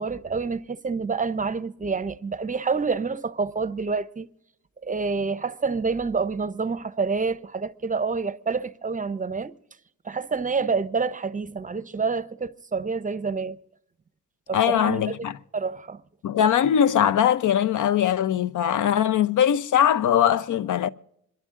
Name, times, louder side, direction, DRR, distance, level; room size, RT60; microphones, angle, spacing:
voice 1, 0.0-4.3 4.8-9.5 10.0-13.6 14.5-15.2 15.5-16.0, right 4 dB, 25° right, 0.6 m, -27 dB
voice 2, 14.5-15.4 16.2-20.9, left 9 dB, 70° left, 0.6 m, -21 dB
27.0 x 11.0 x 3.7 m
cardioid pair, 85°, 32 cm